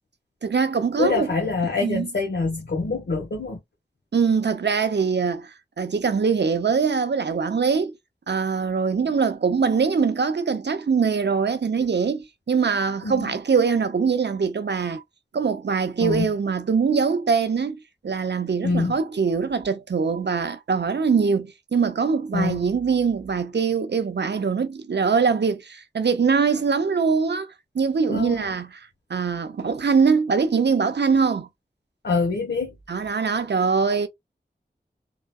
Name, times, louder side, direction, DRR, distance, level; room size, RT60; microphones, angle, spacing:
voice 1, 0.4-1.3 1.8-2.1 4.1-5.5 5.8-8.0 8.3-15.0 15.3-17.8 18.0-27.5 27.7-31.5 32.9-34.1, right 5 dB, 75° right, 0.6 m, -23 dB
voice 2, 1.0-3.6 13.0-13.3 16.0-16.3 18.6-19.0 22.3-22.6 28.1-28.5 32.0-32.7, left 3 dB, 85° left, 1.0 m, -25 dB
3.7 x 2.2 x 2.3 m
wide cardioid pair, 40°, 18 cm